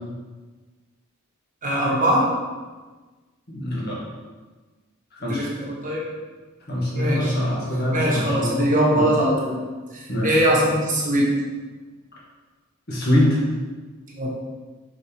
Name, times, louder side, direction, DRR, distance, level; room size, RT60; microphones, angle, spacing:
voice 1, 1.6-2.3 5.3-6.0 6.9-7.3 7.9-9.6 9.9-11.3 14.1-14.3, right 1 dB, 35° right, -3 dB, 1.2 m, -21 dB
voice 2, 3.5-4.0 5.1-5.5 6.7-9.1 10.1-10.4 12.9-13.4, left 1 dB, 50° left, -5 dB, 1.8 m, -24 dB
6.2 x 5.1 x 3.2 m, 1.3 s
head